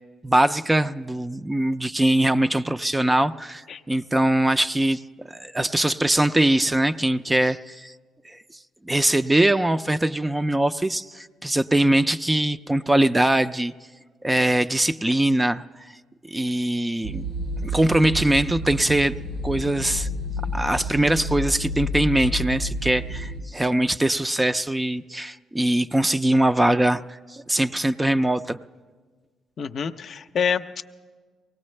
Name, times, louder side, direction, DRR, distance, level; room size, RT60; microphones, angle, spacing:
voice 1, 0.2-5.0 5.3-7.9 8.3-8.4 8.8-13.7 14.2-15.6 16.3-17.2 17.6-19.1 19.4-20.1 20.5-27.0 27.3-28.6, right 1 dB, 15° right, 11 dB, 0.4 m, -22 dB
sound 1, 17.0-23.4, equal, 85° right, 2.1 m, -30 dB
voice 2, 29.6-30.8, left 7 dB, 60° left, 9 dB, 0.5 m, -27 dB
23.5 x 18.5 x 3.2 m, 1.4 s
cardioid pair, 90°, 0 cm